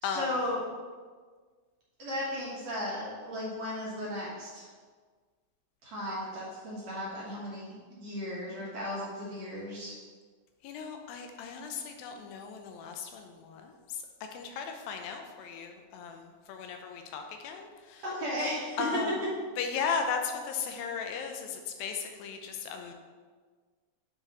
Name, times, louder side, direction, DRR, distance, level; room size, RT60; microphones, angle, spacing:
voice 1, 0.0-0.6 2.0-4.7 5.8-9.9 18.0-19.0, left 1 dB, 60° right, -6 dB, 2.2 m, -35 dB
voice 2, 10.6-13.7 14.3-18.0 18.8-19.1 19.6-22.9, left 6 dB, 85° left, 4 dB, 2.4 m, -36 dB
9.7 x 4.7 x 3.0 m, 1.5 s
omnidirectional pair, 4.1 m